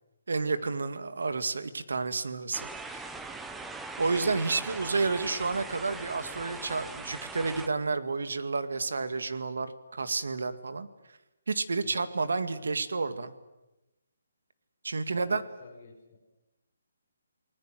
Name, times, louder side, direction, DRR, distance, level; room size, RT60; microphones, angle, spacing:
voice 1, 0.3-3.1 4.0-10.9 11.5-13.3 14.8-15.4, right 4 dB, 80° right, 11 dB, 2.1 m, -30 dB
sound 1, 2.5-7.7, right 3 dB, 5° right, 0.8 m, -41 dB
voice 2, 15.1-16.2, left 3 dB, 20° left, -7 dB, 6.4 m, -52 dB
30.0 x 20.0 x 7.7 m, 0.99 s
hypercardioid pair, 175°, 0 cm